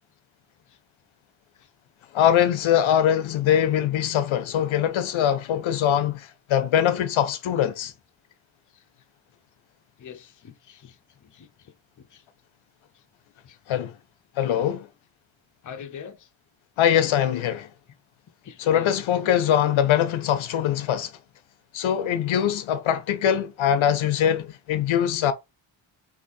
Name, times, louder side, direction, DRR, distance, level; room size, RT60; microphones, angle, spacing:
voice 1, 2.1-7.9 13.7-13.9 14.4-14.9 16.8-17.7 18.6-21.1 21.7-25.3, left 10 dB, 80° left, 0.6 m, -22 dB
voice 2, 10.0-11.0 11.3-11.5 12.1-12.2 13.4-13.6 15.6-16.3 18.4-18.9, left 7 dB, 40° left, 0.6 m, -42 dB
3.9 x 2.7 x 2.5 m
wide cardioid pair, 105°, 47 cm